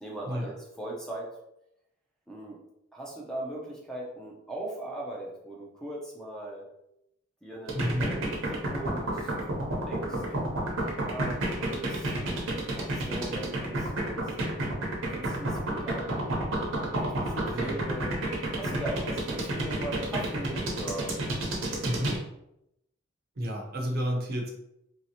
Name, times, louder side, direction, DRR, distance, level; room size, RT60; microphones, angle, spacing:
voice 1, 0.0-1.3 2.3-2.6 2.9-6.7 7.4-10.2 11.0-14.3 15.1-16.3 16.9-18.2 18.5-21.1, right 1 dB, 5° left, -3 dB, 0.5 m, -39 dB
voice 2, 7.7-8.1 17.5-17.8 21.8-22.2 23.4-24.5, equal, 50° right, 1 dB, 0.6 m, -31 dB
sound 1, 7.7-22.2, right 2 dB, 80° right, 0.8 m, -30 dB
3.1 x 2.8 x 2.8 m, 0.82 s
head